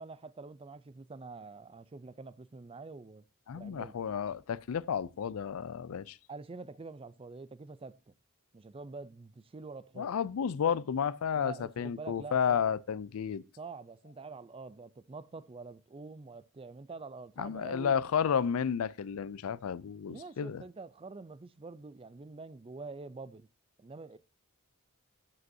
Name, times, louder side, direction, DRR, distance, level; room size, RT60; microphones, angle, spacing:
voice 1, 0.0-3.2 3.5-3.9 6.3-8.1 8.5-10.1 11.3-12.8 13.6-18.0 20.1-23.5 23.8-24.2, right 3 dB, 25° right, 0.4 m, -46 dB
voice 2, 3.5-6.2 10.0-13.4 17.4-20.6, left 7 dB, 70° left, 0.4 m, -32 dB
12.0 x 7.7 x 2.7 m
head